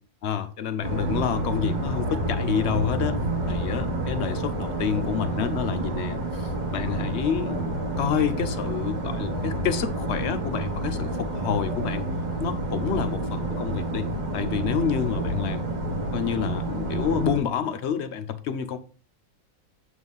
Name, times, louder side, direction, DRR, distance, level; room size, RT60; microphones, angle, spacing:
voice 1, 0.2-3.2 3.5-12.1 12.4-14.1 14.3-15.6 16.1-18.8, left 7 dB, 60° left, 0.8 m, -28 dB
sound 1, 0.8-17.4, right 1 dB, 35° right, 1.0 m, -29 dB
7.9 x 3.2 x 5.3 m
omnidirectional pair, 1.6 m